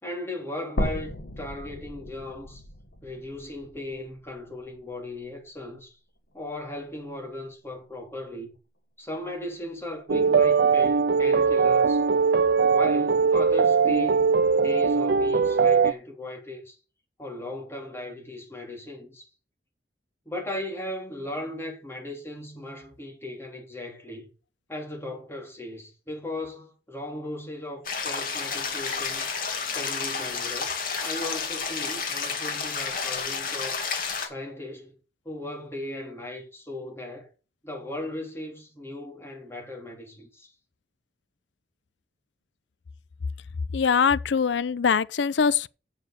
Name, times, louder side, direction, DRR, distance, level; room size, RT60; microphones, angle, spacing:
voice 1, 0.0-2.6 3.0-6.0 6.3-8.5 9.0-12.0 12.6-16.8 17.2-19.3 20.2-24.3 24.7-29.3 29.7-33.8 34.2-35.0 35.2-37.3 37.6-40.5, left 1 dB, 15° left, 3.3 m, -37 dB
sound 1, 0.8-4.9 5.3-5.4 6.8-6.9, left 1 dB, 75° left, 1.5 m, -35 dB
sound 2, 10.1-15.9, right 5 dB, 65° right, 0.4 m, -21 dB
sound 3, 27.8-34.3, left 5 dB, 50° left, 2.2 m, -30 dB
voice 2, 43.7-45.7, left 6 dB, 90° left, 0.5 m, -22 dB
7.7 x 7.2 x 6.6 m
head